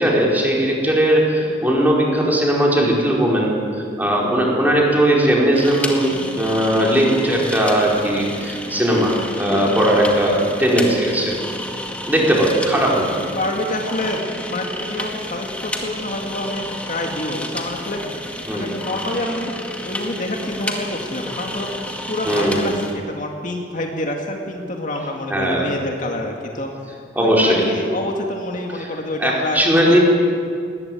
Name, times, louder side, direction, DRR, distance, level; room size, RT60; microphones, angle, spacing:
voice 1, 0.0-3.6 4.0-11.3 12.1-13.1 18.5-18.7 22.3-22.6 25.3-25.7 27.2-27.6 29.2-30.0, right 1 dB, 10° right, -3 dB, 4.7 m, -18 dB
sound 1, 5.5-22.9, left 1 dB, 5° left, 2.1 m, -31 dB
voice 2, 12.9-14.2 14.5-18.0 18.5-19.5 19.8-30.0, left 1 dB, 45° left, 1 dB, 2.2 m, -27 dB
20.5 x 19.5 x 9.2 m, 2.3 s
head